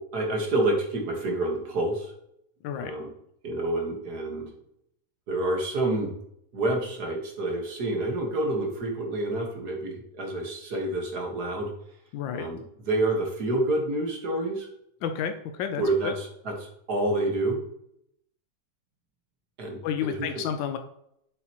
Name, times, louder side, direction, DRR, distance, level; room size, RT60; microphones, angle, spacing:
voice 1, 0.1-2.1 2.8-3.1 3.4-4.5 5.3-6.1 6.5-11.7 12.3-14.7 15.8-17.6 19.6-20.4, right 2 dB, 60° right, 1 dB, 2.0 m, -28 dB
voice 2, 12.1-12.5 15.0-16.1 19.8-20.8, left 8 dB, 85° left, 7 dB, 1.4 m, -31 dB
7.9 x 7.4 x 3.0 m, 0.75 s
omnidirectional pair, 2.0 m